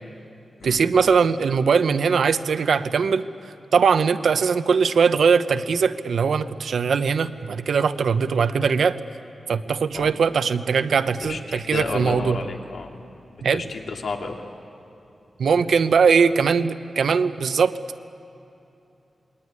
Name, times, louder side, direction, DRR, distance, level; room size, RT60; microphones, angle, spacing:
voice 1, 0.6-3.3 3.7-9.0 9.5-12.4 13.4-13.6 15.4-17.7, right 6 dB, 80° right, 11 dB, 0.8 m, -20 dB
voice 2, 11.2-12.9 13.5-14.4, left 4 dB, 70° left, 1 dB, 2.6 m, -31 dB
27.0 x 21.5 x 9.6 m, 2.8 s
wide cardioid pair, 155°, 0 cm